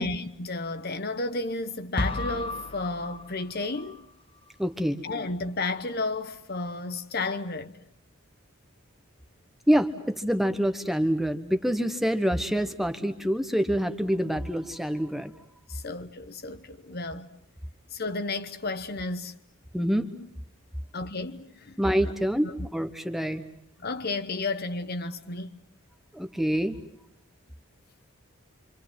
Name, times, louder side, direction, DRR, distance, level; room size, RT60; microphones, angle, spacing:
voice 1, 0.0-4.0 5.0-7.8 15.7-17.3 17.9-19.3 20.9-21.8 22.4-22.5 23.8-25.6, left 3 dB, 45° left, 1.1 m, -32 dB
sound 1, 2.0-4.0, left 2 dB, 25° left, 1.2 m, -33 dB
voice 2, 4.6-5.0 9.7-15.3 19.7-20.1 21.8-23.4 26.1-26.8, equal, ahead, 1.2 m, -26 dB
27.0 x 26.5 x 7.7 m
head